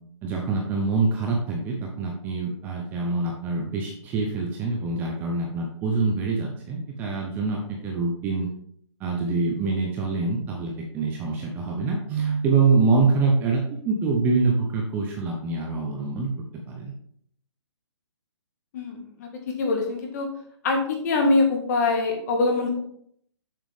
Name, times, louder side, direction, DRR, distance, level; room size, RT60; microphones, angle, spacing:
voice 1, 0.2-8.5 9.0-16.3 16.7-16.9, right 4 dB, 10° right, 0 dB, 0.7 m, -25 dB
voice 2, 18.7-19.3 19.6-20.3 20.6-22.8, left 3 dB, 35° left, 3 dB, 1.8 m, -23 dB
7.4 x 7.2 x 3.5 m, 0.66 s
hypercardioid pair, 160°, 15 cm